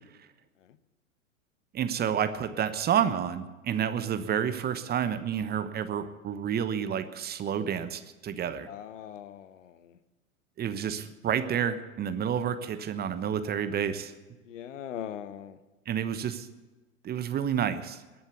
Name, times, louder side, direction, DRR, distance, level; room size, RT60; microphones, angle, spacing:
voice 1, 1.7-8.7 10.6-14.1 15.9-16.5 17.0-18.0, right 8 dB, 25° right, 11 dB, 1.1 m, -29 dB
voice 2, 8.7-10.0 14.4-15.6, left 10 dB, 60° left, 14 dB, 1.2 m, -41 dB
20.5 x 7.2 x 8.3 m, 1.2 s
figure-of-eight pair, 95°, 41 cm